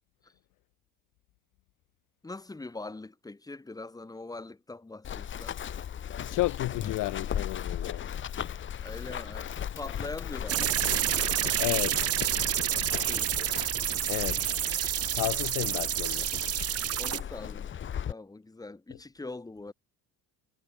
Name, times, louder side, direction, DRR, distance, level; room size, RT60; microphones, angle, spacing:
voice 1, 2.2-5.7 8.8-11.1 13.0-13.6 17.0-17.8 18.1-19.7, left 2 dB, 10° left, 3.9 m, -43 dB
Run, 5.0-18.1, left 9 dB, 35° left, 1.6 m, -37 dB
voice 2, 6.2-8.1 11.6-12.1 14.1-14.4 15.1-16.3, left 19 dB, 60° left, 0.8 m, -32 dB
sound 1, 10.5-17.2, right 12 dB, 40° right, 1.5 m, -29 dB
cardioid pair, 150°, 36 cm